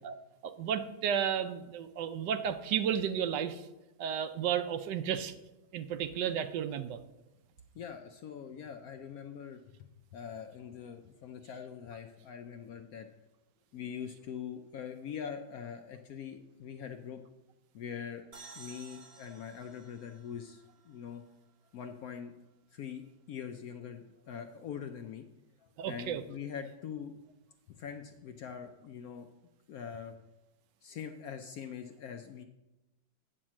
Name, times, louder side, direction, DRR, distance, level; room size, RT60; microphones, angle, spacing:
voice 1, 0.4-3.6 4.0-5.3 5.7-7.0 25.8-26.2, right 8 dB, 75° right, 10 dB, 1.2 m, -33 dB
voice 2, 7.7-13.1 13.7-17.2 17.7-21.2 21.7-22.3 22.7-25.3 25.6-27.1 27.7-29.3 29.7-30.1 30.8-32.4, left 7 dB, 70° left, 6 dB, 0.9 m, -43 dB
sound 1, 18.3-21.9, right 4 dB, 40° right, 0.5 m, -54 dB
8.8 x 4.5 x 7.4 m, 1.0 s
omnidirectional pair, 2.0 m